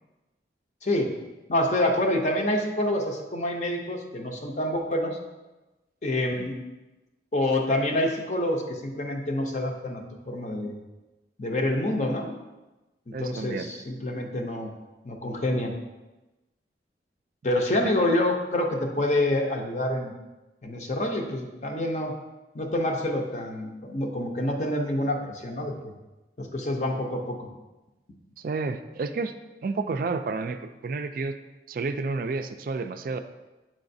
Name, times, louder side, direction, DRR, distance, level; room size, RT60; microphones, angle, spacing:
voice 1, 0.8-1.1 1.5-5.2 6.0-6.6 7.3-10.8 11.4-12.3 13.1-14.7 15.0-15.7 17.4-20.1 20.6-22.1 22.5-25.9 26.4-27.5, left 1 dB, 40° left, 2 dB, 0.6 m, -27 dB
voice 2, 13.1-13.7 17.8-17.9 28.4-29.3 29.6-31.4 31.7-33.2, right 4 dB, 50° right, 9 dB, 0.3 m, -30 dB
7.4 x 4.9 x 2.6 m, 1.1 s
head